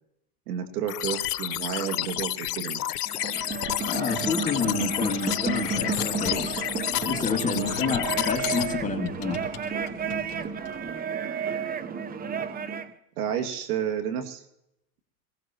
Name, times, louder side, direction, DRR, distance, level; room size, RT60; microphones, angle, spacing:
voice 1, 0.5-2.8 13.2-14.4, right 9 dB, 75° right, 6 dB, 2.3 m, -31 dB
sound 1, 0.9-8.7, left 13 dB, 80° left, 0.8 m, -30 dB
sound 2, 3.1-12.9, right 6 dB, 20° right, 0.8 m, -32 dB
voice 2, 3.8-6.7 7.1-9.4, left 5 dB, 15° left, 2 dB, 2.3 m, -29 dB
Computer keyboard, 3.9-10.9, left 11 dB, 45° left, 3.5 m, -43 dB
22.0 x 17.5 x 3.0 m, 0.80 s
hypercardioid pair, 105°, 46 cm